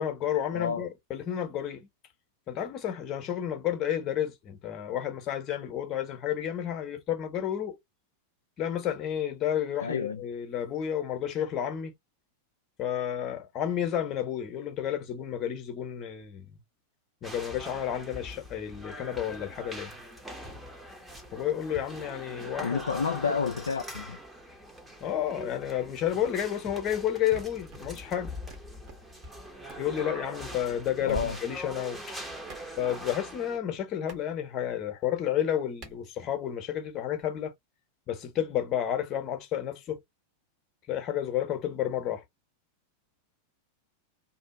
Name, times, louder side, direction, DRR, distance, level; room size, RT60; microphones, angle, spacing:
voice 1, 0.0-1.9 2.5-7.8 8.6-11.9 12.8-16.5 17.2-19.9 21.3-22.8 23.3-23.4 25.0-28.4 29.8-32.2 32.8-37.5 38.1-40.0 40.9-42.2, left 10 dB, 35° left, 0.9 m, -31 dB
voice 2, 0.5-0.9 9.8-10.2 22.6-24.2 31.0-31.4, left 6 dB, 70° left, 0.3 m, -30 dB
sound 1, 17.2-33.6, equal, 5° right, 0.8 m, -43 dB
sound 2, 27.3-29.4 29.7-29.9 31.1-31.6 32.5-32.6 34.1-34.2 35.8-36.0, right 4 dB, 35° right, 1.1 m, -43 dB
2.7 x 2.4 x 2.6 m
figure-of-eight pair, 90°, 0 cm